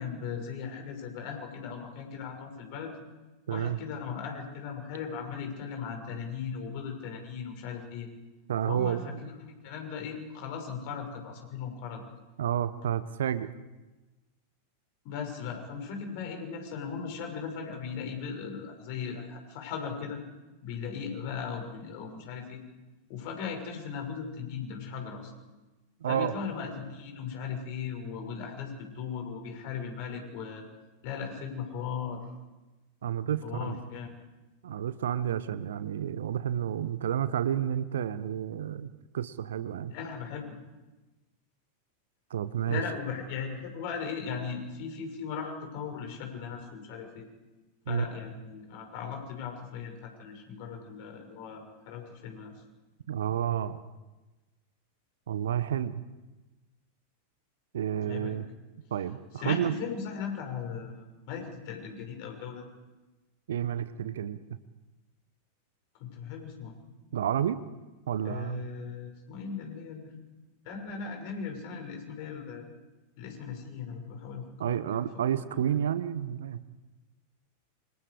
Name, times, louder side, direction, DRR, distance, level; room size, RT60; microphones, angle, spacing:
voice 1, 0.0-2.9 3.5-8.1 8.6-12.0 15.0-20.2 20.6-22.6 23.1-25.3 26.0-30.6 31.0-32.2 33.4-34.1 39.9-40.6 42.7-47.3 47.9-52.5 58.1-58.4 59.4-62.6 66.0-66.8 68.2-70.1 70.6-72.7 73.2-75.0 75.4-75.8, left 6 dB, 45° left, 3 dB, 6.5 m, -38 dB
voice 2, 3.5-3.8 8.5-9.0 12.4-13.5 26.0-26.3 33.0-33.8 34.6-38.9 39.1-39.9 42.3-42.8 47.9-48.0 53.1-53.8 55.3-56.0 57.7-58.5 58.9-59.8 63.5-64.4 67.1-67.6 68.1-68.6 74.6-76.6, right 10 dB, 60° right, 14 dB, 1.0 m, -30 dB
28.5 x 26.5 x 5.0 m, 1.1 s
figure-of-eight pair, 90°, 0 cm